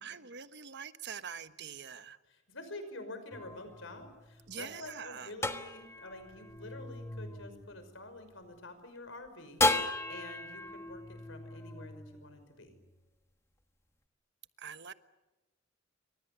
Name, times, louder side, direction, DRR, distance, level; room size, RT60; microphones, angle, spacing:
voice 1, 0.0-2.2 4.5-5.3 14.6-14.9, right 7 dB, 60° right, 11 dB, 1.2 m, -44 dB
voice 2, 2.3-12.8, left 2 dB, 70° left, 9 dB, 5.7 m, -48 dB
sound 1, 3.3-8.6 9.6-13.0, left 2 dB, 15° left, 1.4 m, -36 dB
29.0 x 25.0 x 6.9 m, 1.1 s
head